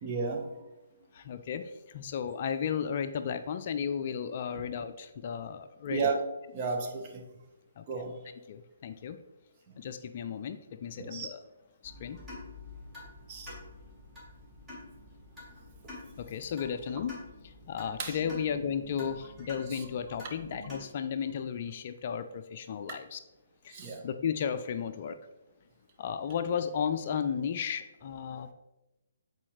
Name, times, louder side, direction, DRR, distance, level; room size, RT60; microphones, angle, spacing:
voice 1, 0.0-0.6 5.9-7.2 7.9-8.2 11.0-11.3 13.3-13.5 18.0-18.2 19.7-19.9 23.7-24.0, right 4 dB, 30° right, 2 dB, 1.1 m, -33 dB
voice 2, 1.1-6.1 7.8-7.9 8.5-9.2 9.8-11.4 11.8-12.2 16.2-23.2 23.6-25.2 26.0-28.5, left 7 dB, 45° left, 9 dB, 0.4 m, -34 dB
sound 1, 11.8-20.8, left 2 dB, 10° right, 2.2 m, -48 dB
8.4 x 4.2 x 3.2 m, 0.99 s
figure-of-eight pair, 140°, 0 cm